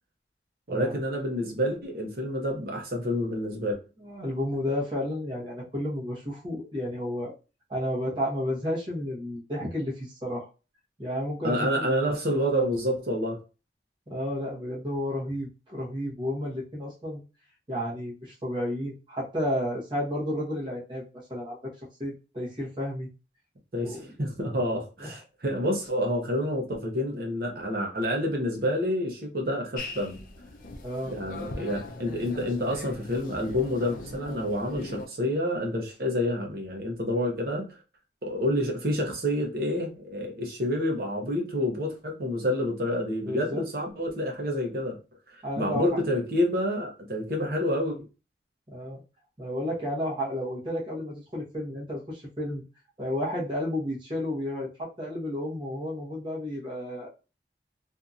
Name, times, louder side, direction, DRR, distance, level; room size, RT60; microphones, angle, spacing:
voice 1, 0.7-3.8 11.4-13.4 23.7-30.2 31.1-37.8 38.2-45.0 45.6-48.0, equal, 55° right, 0.8 m, -28 dB
voice 2, 4.0-7.3 7.7-10.5 11.0-12.1 14.1-17.2 17.7-21.7 22.0-23.1 23.8-24.1 25.0-25.2 30.8-31.2 43.2-43.6 45.4-46.0 48.7-49.0 49.4-52.6 53.0-57.1, left 1 dB, 25° right, 0.9 m, -32 dB
sound 1, 29.8-35.1, left 2 dB, 50° left, 0.5 m, -40 dB
2.7 x 2.6 x 2.3 m
head